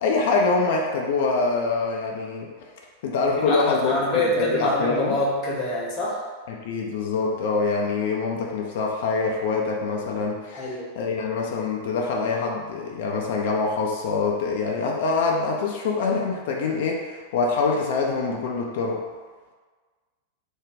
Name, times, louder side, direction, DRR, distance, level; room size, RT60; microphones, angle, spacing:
voice 1, 0.0-2.5 3.0-5.2 6.5-19.0, left 4 dB, 55° left, 0 dB, 0.3 m, -25 dB
voice 2, 3.4-6.2 10.5-10.9, left 1 dB, 35° left, -4 dB, 0.8 m, -25 dB
2.5 x 2.2 x 3.4 m, 1.4 s
figure-of-eight pair, 90°, 0 cm